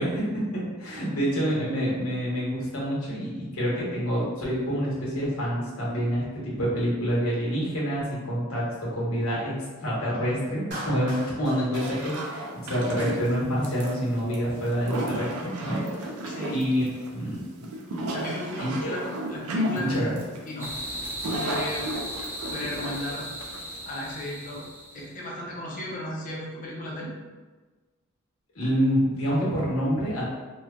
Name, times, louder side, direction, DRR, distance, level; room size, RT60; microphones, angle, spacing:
voice 1, 0.0-16.1 16.5-16.8 17.1-17.7 18.6-18.9 19.7-20.2 28.5-30.2, equal, 70° left, -6 dB, 1.0 m, -27 dB
Clapping, 10.7-13.0, right 1 dB, 50° right, 0.7 m, -40 dB
sound 1, 11.7-23.9, right 1 dB, 85° right, 0.4 m, -34 dB
voice 2, 16.2-16.6 18.1-19.0 19.3-20.1 20.5-20.7 21.3-21.9 22.5-23.3 23.9-24.6 24.9-27.1, left 1 dB, 40° left, -3 dB, 0.6 m, -35 dB
sound 2, 20.6-25.1, equal, 10° right, 0.3 m, -36 dB
2.9 x 2.2 x 2.2 m, 1.3 s
head